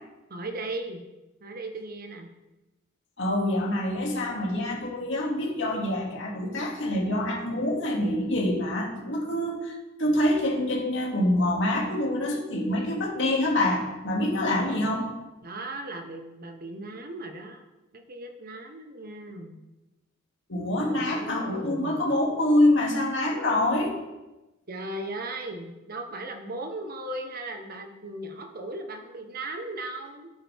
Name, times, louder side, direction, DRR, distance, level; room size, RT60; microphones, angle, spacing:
voice 1, 0.3-1.0 1.4-2.3 14.5-14.9 15.4-17.6 17.9-19.6 20.9-22.1 24.7-30.3, right 2 dB, 50° right, 4 dB, 1.3 m, -37 dB
voice 2, 3.2-15.1 20.5-23.9, left 1 dB, 65° left, -2 dB, 2.6 m, -26 dB
12.5 x 9.0 x 3.7 m, 1.0 s
head